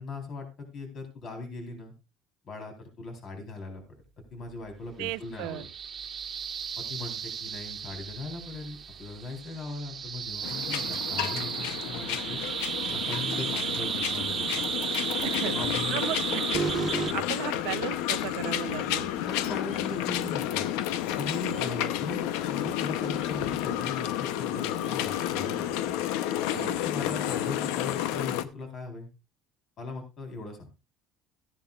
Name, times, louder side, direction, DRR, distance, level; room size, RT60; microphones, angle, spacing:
voice 1, 0.0-1.9 2.4-4.0 4.3-5.7 6.8-12.4 12.9-14.7 15.5-16.1 17.0-17.2 19.1-20.6 21.2-25.9 26.5-29.1 29.8-30.7, left 2 dB, 45° left, 4.0 m, -39 dB
voice 2, 5.0-5.7 15.2-15.5 15.9-16.7 17.1-19.1 21.5-21.8 26.5-26.9, right 18 dB, 80° right, 0.6 m, -36 dB
sound 1, 5.4-17.1, right 7 dB, 35° right, 1.3 m, -33 dB
sound 2, 10.4-28.4, left 12 dB, 90° left, 0.7 m, -31 dB
sound 3, 16.4-17.0 18.0-18.6 19.6-20.2 21.4-22.0 23.1-23.6 24.7-25.3 26.4-27.0, left 3 dB, 70° left, 5.0 m, -56 dB
14.0 x 10.5 x 2.4 m
cardioid pair, 130°, 0 cm